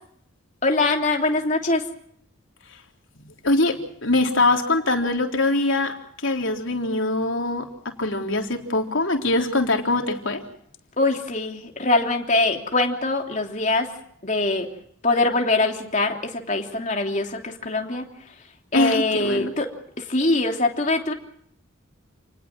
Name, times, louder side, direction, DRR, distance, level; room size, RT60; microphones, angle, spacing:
voice 1, 0.6-1.8 11.0-13.9 14.2-14.7 15.0-18.1 18.7-19.7 20.0-21.1, left 2 dB, 35° left, 3 dB, 3.1 m, -23 dB
voice 2, 3.2-5.9 6.2-7.7 8.0-10.4 18.7-19.5, left 2 dB, 65° left, 3 dB, 3.7 m, -23 dB
29.5 x 20.0 x 6.1 m, 0.68 s
head